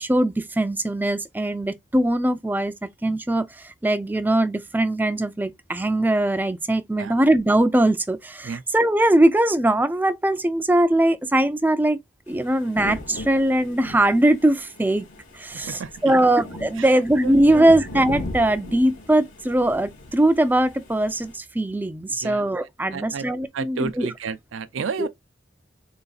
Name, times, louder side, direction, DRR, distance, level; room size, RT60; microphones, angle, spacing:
voice 1, 0.0-12.0 12.3-15.1 15.3-24.1 25.0-25.1, right 1 dB, 10° right, 0.3 m, -21 dB
sound 1, 12.3-21.4, left 1 dB, 85° left, 2.2 m, -38 dB
voice 2, 15.5-16.3 16.8-16.9 17.2-17.8 22.2-22.4 22.9-23.3 23.5-25.1, right 5 dB, 85° right, 0.5 m, -32 dB
4.0 x 2.4 x 3.9 m
head